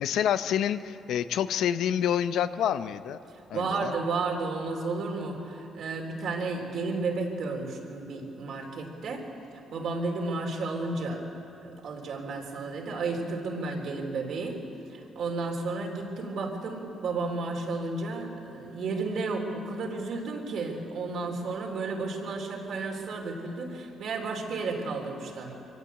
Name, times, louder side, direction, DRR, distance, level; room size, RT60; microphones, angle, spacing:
voice 1, 0.0-3.2 3.5-3.9, left 9 dB, 80° left, 12 dB, 0.7 m, -27 dB
voice 2, 3.5-9.2 9.7-11.3 11.6-14.6 14.9-25.5, right 3 dB, 70° right, 2 dB, 3.7 m, -32 dB
23.5 x 17.5 x 8.2 m, 2.9 s
cardioid pair, 90°, 0 cm